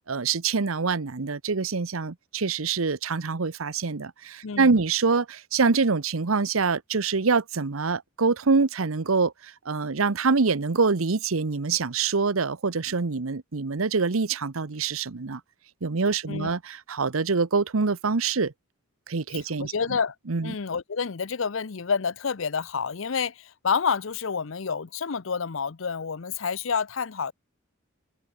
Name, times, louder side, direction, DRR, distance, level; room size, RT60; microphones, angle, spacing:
voice 1, 0.1-15.4 15.8-18.5 19.1-19.7 20.3-20.5, right 4 dB, 90° right, 0.9 m, -25 dB
voice 2, 4.4-4.8 16.3-16.5 19.3-20.1 20.4-27.3, left 6 dB, 70° left, 0.7 m, -29 dB
head